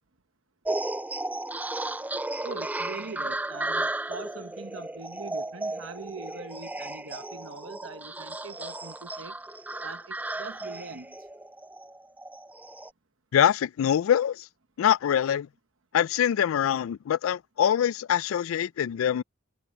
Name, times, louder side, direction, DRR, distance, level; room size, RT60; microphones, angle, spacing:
sound 1, 0.6-12.9, right 2 dB, 10° right, 0.4 m, -34 dB
voice 1, 2.4-9.4 9.8-11.2, right 4 dB, 75° right, 1.1 m, -42 dB
voice 2, 13.3-14.5 14.8-15.5 15.9-19.2, left 9 dB, 85° left, 0.3 m, -24 dB
head